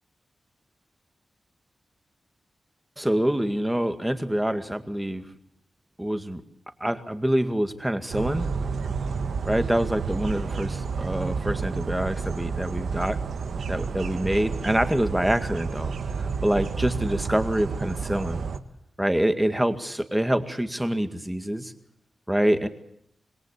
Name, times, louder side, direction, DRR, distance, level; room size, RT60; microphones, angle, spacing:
voice 1, 3.0-5.2 6.0-6.4 6.8-8.5 9.4-13.2 13.7-15.9 16.4-18.4 19.0-21.7 22.3-22.7, right 1 dB, 5° right, 9 dB, 2.0 m, -26 dB
sound 1, 8.1-18.6, right 5 dB, 75° right, 1.7 m, -30 dB
26.5 x 21.5 x 8.4 m, 0.74 s
wide cardioid pair, 115°, 0 cm